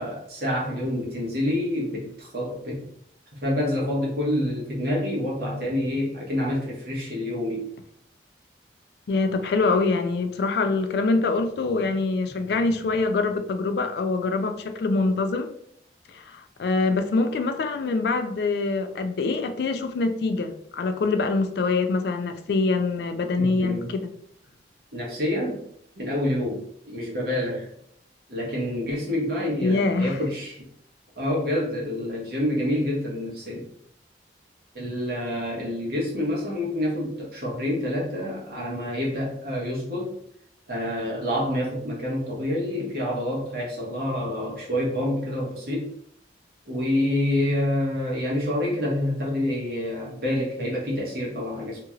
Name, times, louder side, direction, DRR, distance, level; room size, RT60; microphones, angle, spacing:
voice 1, 0.0-2.8 3.3-7.7 23.4-23.9 24.9-25.6 26.0-27.7 28.3-30.7 31.2-33.7 34.7-40.2 40.7-45.9 46.7-51.8, left 1 dB, 55° right, -4 dB, 1.1 m, -27 dB
voice 2, 9.1-15.5 16.1-24.1 29.6-30.2, left 3 dB, 60° left, 8 dB, 0.3 m, -24 dB
2.8 x 2.8 x 2.4 m, 0.69 s
head